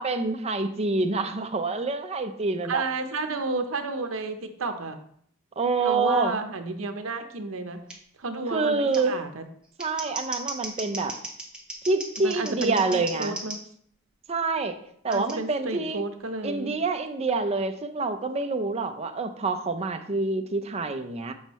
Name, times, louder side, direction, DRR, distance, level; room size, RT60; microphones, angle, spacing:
voice 1, 0.0-2.8 5.6-6.3 8.5-9.1 9.8-11.1 11.9-13.4 14.3-14.7 15.0-16.0 16.4-21.3, right 3 dB, 30° right, 7 dB, 0.6 m, -27 dB
voice 2, 2.6-5.0 5.8-7.8 8.2-9.4 12.2-13.6 15.1-16.7, right 3 dB, 80° right, 7 dB, 0.8 m, -31 dB
Scissors, 7.9-8.0 8.9-9.0 9.6-13.6 15.1-15.3, right 2 dB, 5° right, 1.1 m, -36 dB
7.2 x 5.5 x 3.0 m, 0.65 s
head